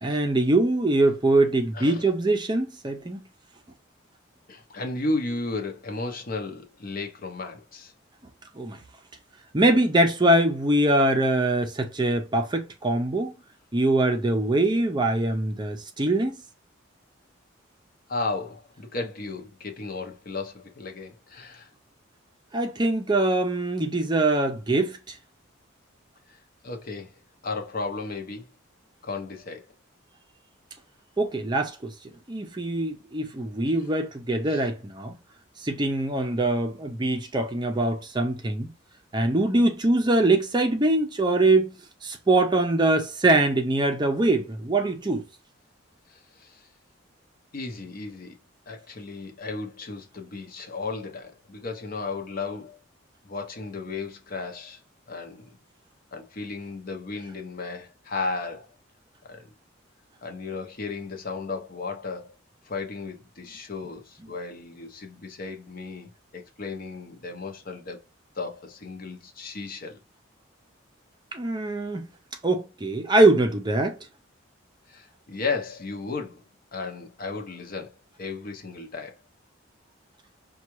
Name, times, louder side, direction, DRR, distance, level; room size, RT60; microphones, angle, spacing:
voice 1, 0.0-3.2 8.6-8.8 9.5-13.3 13.7-16.4 22.5-25.2 31.2-31.9 32.3-35.2 35.6-38.7 39.1-41.8 42.0-45.2 71.3-72.1 72.4-74.0, right 2 dB, 20° right, 0.5 m, -23 dB
voice 2, 1.7-2.1 4.5-7.9 18.1-21.7 26.3-26.4 26.6-28.5 29.0-29.7 33.7-33.8 34.5-34.6 46.1-46.6 47.5-48.4 48.7-52.8 53.2-54.8 55.1-55.5 56.1-58.7 59.2-59.5 60.2-62.3 62.6-68.0 68.3-70.0 74.9-76.4 76.7-79.2, left 3 dB, 45° left, 0.7 m, -34 dB
5.6 x 2.3 x 3.0 m
head